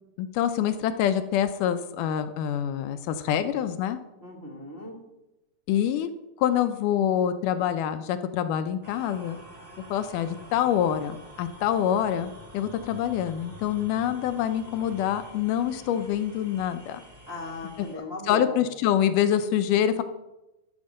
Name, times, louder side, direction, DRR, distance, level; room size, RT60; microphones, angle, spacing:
voice 1, 0.2-4.0 5.7-6.1 6.4-9.4 9.9-17.0 18.3-20.0, left 10 dB, 80° left, 10 dB, 2.1 m, -26 dB
voice 2, 4.2-5.0 17.3-18.6, left 2 dB, 45° right, -3 dB, 0.7 m, -37 dB
sound 1, 8.8-17.9, right 1 dB, 25° right, 1.3 m, -48 dB
13.5 x 5.2 x 6.4 m, 0.96 s
omnidirectional pair, 3.9 m